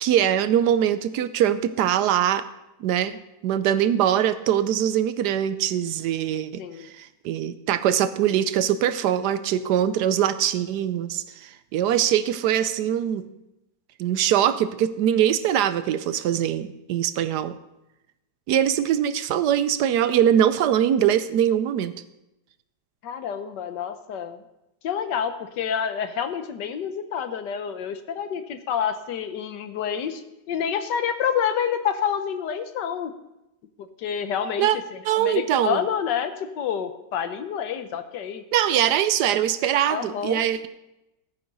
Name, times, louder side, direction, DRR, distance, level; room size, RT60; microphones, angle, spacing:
voice 1, 0.0-2.5 2.8-13.3 14.0-17.6 18.5-21.9 34.6-34.8 35.1-35.8 38.5-40.7, right 10 dB, 75° right, 13 dB, 1.1 m, -22 dB
voice 2, 6.6-6.9 23.0-24.4 24.8-30.2 30.5-33.1 33.8-38.4 39.9-40.4, left 8 dB, 75° left, 10 dB, 1.5 m, -28 dB
15.0 x 8.6 x 4.0 m, 0.92 s
omnidirectional pair, 1.9 m